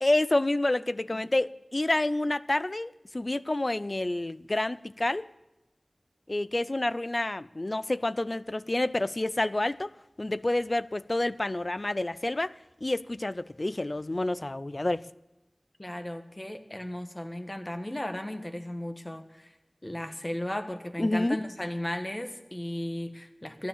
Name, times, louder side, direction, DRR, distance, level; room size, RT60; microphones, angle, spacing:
voice 1, 0.0-5.3 6.3-9.9 10.2-12.5 12.8-15.0 21.0-21.4, left 2 dB, 50° left, 0.4 m, -28 dB
voice 2, 15.8-19.5 19.8-23.7, left 1 dB, 30° left, 1.6 m, -35 dB
14.0 x 10.0 x 7.2 m
wide cardioid pair, 45°, 0 cm